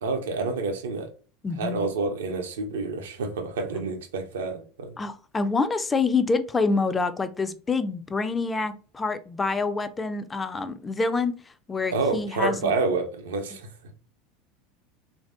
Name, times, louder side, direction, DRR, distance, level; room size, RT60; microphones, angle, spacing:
voice 1, 0.0-1.1 1.6-4.9 11.9-13.7, right 3 dB, 75° right, 0.5 m, -28 dB
voice 2, 1.4-1.8 5.0-11.4 11.7-12.7, left 4 dB, 20° left, 0.4 m, -26 dB
3.2 x 2.5 x 2.5 m
figure-of-eight pair, 75°, 0 cm